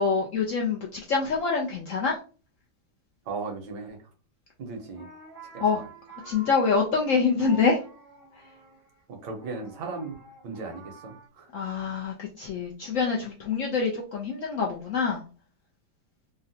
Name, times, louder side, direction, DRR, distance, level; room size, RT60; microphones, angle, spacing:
voice 1, 0.0-2.2 5.6-5.8 6.2-7.8 11.5-15.2, left 5 dB, 75° left, -1 dB, 0.7 m, -25 dB
voice 2, 3.2-4.1 4.6-5.1 5.5-5.9 9.1-11.5, right 4 dB, 75° right, 3 dB, 1.4 m, -37 dB
sound 1, 4.7-11.3, right 3 dB, 60° right, 0.6 m, -48 dB
3.7 x 2.1 x 2.6 m, 0.36 s
omnidirectional pair, 2.0 m